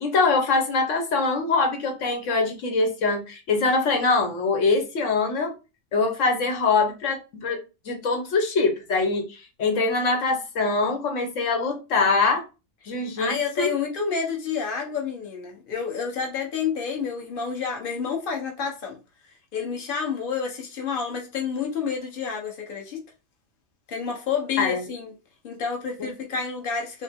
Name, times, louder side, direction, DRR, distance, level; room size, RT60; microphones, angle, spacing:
voice 1, 0.0-5.5 5.9-7.6 7.9-12.4 12.9-13.7 24.6-24.8 26.0-26.1, left 3 dB, 85° left, 1.3 m, -23 dB
voice 2, 13.2-19.0 19.5-23.0 23.9-25.1 25.4-27.0, left 6 dB, 45° left, 1.2 m, -29 dB
6.1 x 2.1 x 3.5 m
omnidirectional pair, 1.3 m